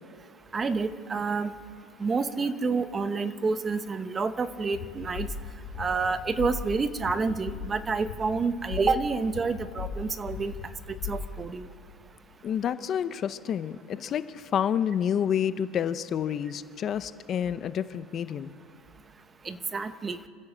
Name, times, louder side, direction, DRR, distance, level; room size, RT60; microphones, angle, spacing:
voice 1, 0.5-1.5 2.0-5.3 5.8-10.5 10.9-11.7 19.4-20.2, right 4 dB, 20° right, 12 dB, 0.8 m, -28 dB
sound 1, 4.7-11.5, left 6 dB, 70° left, 5.0 m, -39 dB
voice 2, 12.4-18.5, left 9 dB, 30° left, 13 dB, 0.6 m, -29 dB
27.0 x 15.0 x 7.4 m, 2.4 s
supercardioid pair, 145°, 0 cm